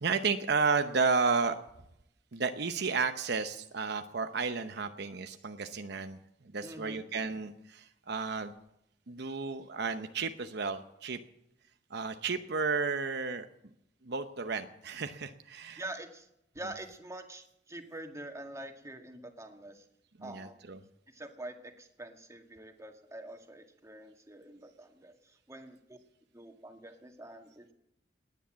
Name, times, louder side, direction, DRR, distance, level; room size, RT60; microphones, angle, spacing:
voice 1, 0.0-1.5 2.3-6.2 6.5-8.5 9.1-11.2 11.9-13.4 14.0-15.8 20.2-20.8, right 4 dB, 65° right, 8 dB, 0.9 m, -32 dB
voice 2, 6.6-7.1 15.8-16.3 16.5-19.9 20.2-20.6 21.1-26.0 26.3-27.7, right 1 dB, 15° right, 5 dB, 1.9 m, -46 dB
19.0 x 10.0 x 7.5 m, 0.81 s
head